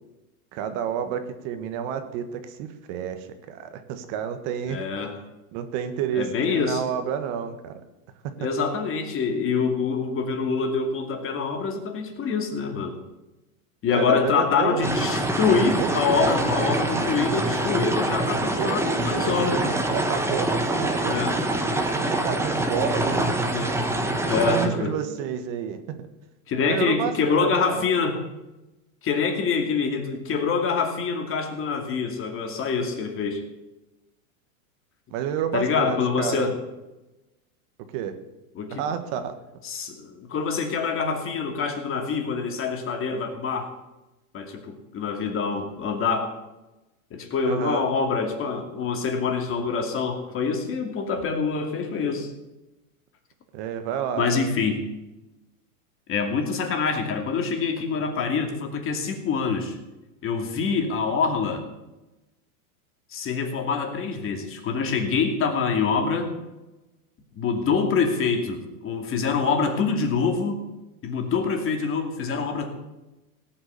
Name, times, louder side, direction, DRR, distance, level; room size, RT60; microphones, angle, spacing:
voice 1, 0.5-4.8 5.5-7.8 8.4-8.5 13.9-14.9 15.8-16.6 18.6-21.3 21.9-23.4 24.4-26.0 26.6-27.8 35.1-36.5 37.9-38.1 38.7-39.4 47.4-47.9 53.5-54.3, right 8 dB, 50° right, 9 dB, 1.7 m, -30 dB
voice 2, 4.7-5.2 6.1-6.8 8.4-13.0 13.8-19.6 21.1-21.4 23.5-23.8 24.2-24.9 26.5-28.2 29.0-33.4 35.5-36.6 38.5-38.8 39.6-43.7 44.3-46.3 47.1-52.3 54.2-54.8 56.1-59.8 60.2-61.6 63.1-66.4 67.3-70.6 71.0-72.7, left 5 dB, 30° left, 4 dB, 2.6 m, -25 dB
sound 1, 14.8-24.7, right 1 dB, 5° right, 1.6 m, -25 dB
17.5 x 8.7 x 6.8 m, 1.0 s
supercardioid pair, 135°, 44 cm